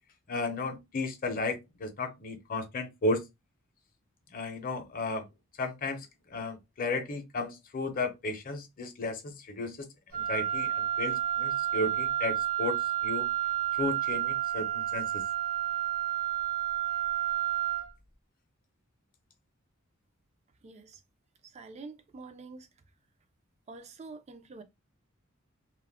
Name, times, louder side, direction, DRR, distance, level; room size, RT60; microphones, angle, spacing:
voice 1, 0.3-3.2 4.3-5.3 5.6-9.9 10.1-13.3 13.7-15.2, left 2 dB, 45° left, 0.6 m, -34 dB
Wind instrument woodwind instrument, 10.1-17.9, right 12 dB, 80° right, 0.8 m, -30 dB
voice 2, 20.6-21.0 21.4-22.7 23.7-24.6, right 3 dB, 30° right, 0.4 m, -46 dB
2.3 x 2.0 x 3.5 m
head